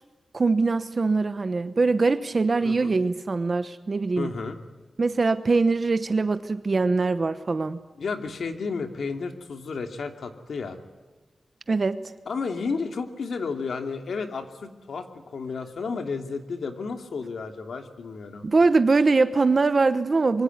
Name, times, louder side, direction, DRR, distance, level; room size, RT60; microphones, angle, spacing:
voice 1, 0.3-4.3 5.0-7.8 11.7-12.0 18.4-20.4, right 3 dB, 40° right, 12 dB, 1.0 m, -22 dB
voice 2, 2.6-3.0 4.2-4.6 8.0-10.8 12.3-18.4, left 4 dB, 85° left, 6 dB, 2.8 m, -32 dB
25.5 x 23.5 x 9.7 m, 1.2 s
wide cardioid pair, 150°, 0 cm